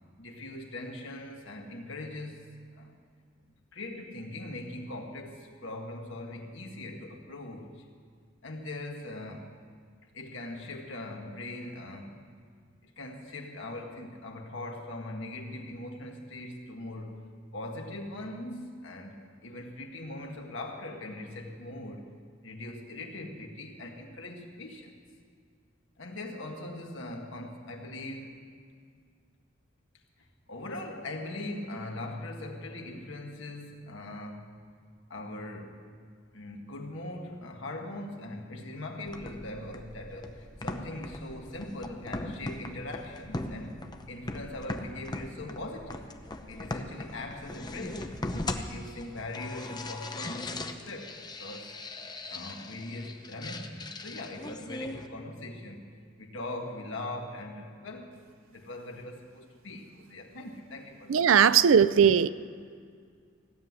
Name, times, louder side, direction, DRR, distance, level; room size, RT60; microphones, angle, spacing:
voice 1, 0.2-2.5 2.8-2.9 3.7-7.8 8.4-9.5 10.1-12.2 12.8-17.3 17.5-22.1 22.4-24.9 26.0-28.4 30.5-34.6 35.1-35.8 36.3-43.8 44.1-46.0 46.5-48.1 48.5-51.7 52.3-58.1 58.5-61.2, left 1 dB, 70° left, 1 dB, 1.8 m, -41 dB
sound 1, 39.1-55.1, left 2 dB, 20° left, 0.8 m, -39 dB
voice 2, 61.1-62.3, right 7 dB, 85° right, 16 dB, 0.4 m, -19 dB
16.5 x 7.8 x 9.6 m, 2.1 s
head